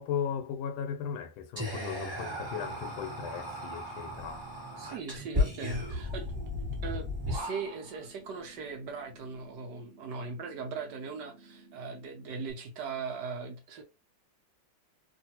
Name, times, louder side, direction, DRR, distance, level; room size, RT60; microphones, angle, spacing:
voice 1, 0.0-4.4, left 8 dB, 85° left, 1.4 m, -36 dB
Whispering, 1.6-8.0, left 2 dB, 15° right, 1.5 m, -35 dB
sound 1, 2.5-12.5, right 3 dB, 45° right, 1.3 m, -56 dB
voice 2, 4.8-13.8, right 4 dB, 70° right, 1.1 m, -39 dB
3.0 x 2.5 x 2.8 m
omnidirectional pair, 2.2 m